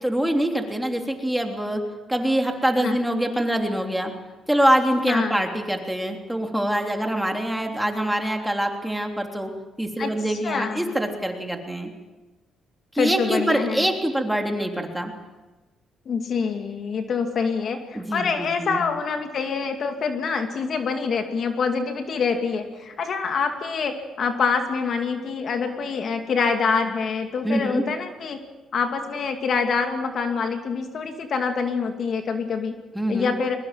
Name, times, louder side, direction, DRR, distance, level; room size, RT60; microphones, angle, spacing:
voice 1, 0.0-1.8 2.1-4.1 4.5-11.9 12.9-15.1 17.9-18.8 27.4-27.8 32.9-33.3, right 1 dB, 5° right, 3 dB, 3.3 m, -24 dB
voice 2, 5.1-5.4 10.0-10.9 13.0-13.9 16.1-28.4 28.7-32.8 33.1-33.6, left 5 dB, 55° left, 5 dB, 2.5 m, -26 dB
22.5 x 21.0 x 7.5 m, 1.2 s
cardioid pair, 90°, 0 cm